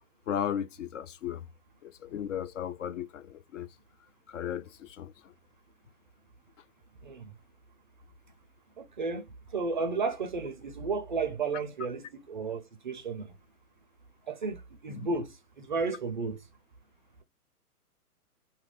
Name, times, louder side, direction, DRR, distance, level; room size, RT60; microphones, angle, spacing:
voice 1, 0.3-1.4 1.8-3.7 4.3-5.3 14.9-15.1, left 9 dB, 55° left, 0.5 m, -36 dB
voice 2, 7.0-7.3 8.8-13.3 14.3-16.5, right 4 dB, 35° right, 0.4 m, -33 dB
2.7 x 2.4 x 3.2 m
hypercardioid pair, 135°, 46 cm